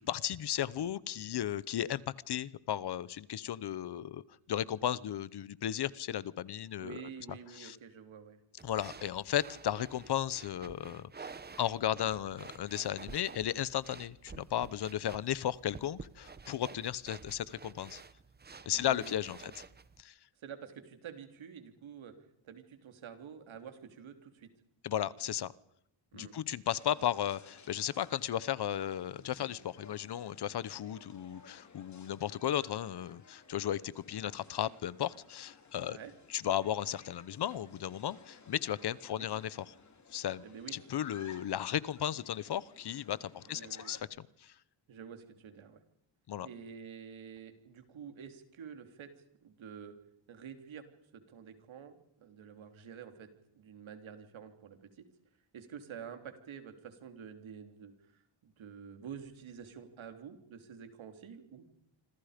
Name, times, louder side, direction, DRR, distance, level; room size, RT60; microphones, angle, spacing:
voice 1, 0.0-4.2 4.5-7.0 7.3-7.8 8.6-11.3 11.6-18.0 18.7-19.6 20.0-20.1 24.8-25.5 26.1-36.0 36.3-39.7 40.1-40.4 40.7-44.1 44.4-44.5 46.3-46.5, left 11 dB, 55° left, 19 dB, 0.8 m, -35 dB
voice 2, 6.8-8.4 18.7-19.5 20.4-22.1 22.4-24.5 26.1-26.4 35.8-36.1 39.1-39.3 40.4-40.7 43.4-44.0 44.9-45.8 46.4-49.1 49.4-50.0 50.3-50.8 51.1-55.1 55.5-61.7, right 7 dB, 75° right, 7 dB, 3.5 m, -49 dB
sound 1, 8.6-20.0, right 5 dB, 20° right, 0.8 m, -51 dB
sound 2, 26.6-44.0, left 5 dB, 35° left, 3.1 m, -57 dB
27.0 x 26.0 x 5.2 m, 0.73 s
wide cardioid pair, 175°, 47 cm